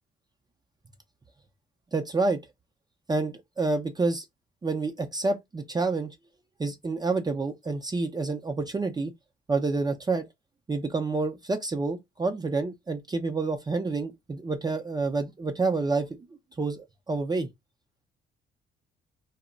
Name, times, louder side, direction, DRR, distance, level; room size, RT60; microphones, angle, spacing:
voice 1, 1.9-2.4 3.1-4.2 4.6-6.1 6.6-9.1 9.5-10.2 10.7-16.2 16.6-17.5, right 3 dB, 20° right, 0.4 m, -28 dB
2.1 x 2.0 x 3.7 m
cardioid pair, 90°, 20 cm